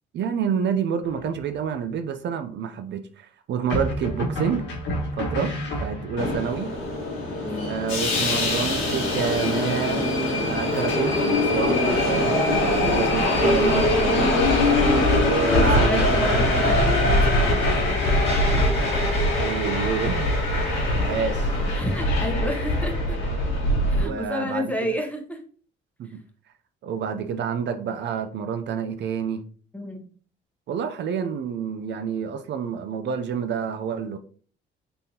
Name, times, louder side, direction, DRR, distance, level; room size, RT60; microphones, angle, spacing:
voice 1, 0.1-4.7 5.1-5.5 5.8-6.7 7.6-14.3 15.2-16.5 19.4-20.3 21.0-21.5 24.0-24.9 26.0-26.2 26.8-29.4 30.7-34.2, right 7 dB, 65° right, 8 dB, 0.5 m, -28 dB
sound 1, 1.0-1.6 3.7-6.4, equal, 70° left, 1.6 m, -29 dB
Subway metro underground, 6.2-24.1, left 1 dB, 90° left, 1.8 m, -22 dB
voice 2, 7.4-7.8 14.7-15.0 15.5-17.6 18.8-19.0 21.7-23.2 23.9-25.4 29.7-30.0, equal, 5° left, 3 dB, 0.9 m, -31 dB
sound 2, 15.4-20.6, right 1 dB, 30° right, 0.8 m, -35 dB
4.0 x 3.7 x 2.8 m, 0.43 s
cardioid pair, 90°, 20 cm